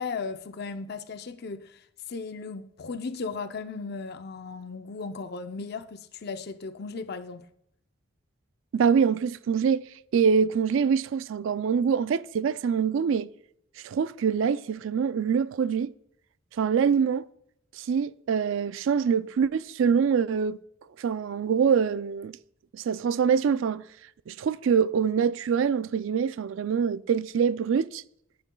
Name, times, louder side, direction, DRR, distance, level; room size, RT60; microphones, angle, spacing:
voice 1, 0.0-7.5, left 4 dB, 50° left, 0.5 m, -36 dB
voice 2, 8.7-9.8 10.1-13.3 13.8-15.9 16.6-17.2 17.7-20.6 21.0-22.4 22.7-23.8 24.3-28.0, right 6 dB, 65° right, 0.3 m, -24 dB
10.5 x 9.1 x 2.2 m
head